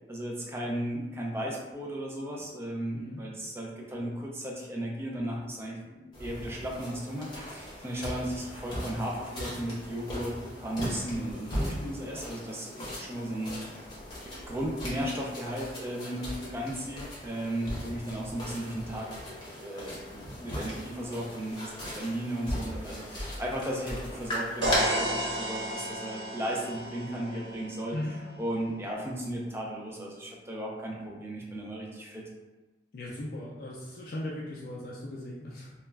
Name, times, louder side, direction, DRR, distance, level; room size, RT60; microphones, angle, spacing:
voice 1, 0.1-13.8 14.2-19.1 19.4-27.9 28.4-32.2, right 1 dB, 15° right, -2 dB, 0.4 m, -35 dB
sound 1, 6.1-24.8, equal, 25° left, 0.7 m, -39 dB
sound 2, 24.6-28.5, right 1 dB, 75° right, 0.6 m, -33 dB
voice 2, 32.9-35.7, left 1 dB, 55° left, -5 dB, 0.3 m, -38 dB
2.3 x 2.1 x 3.2 m, 1.2 s
head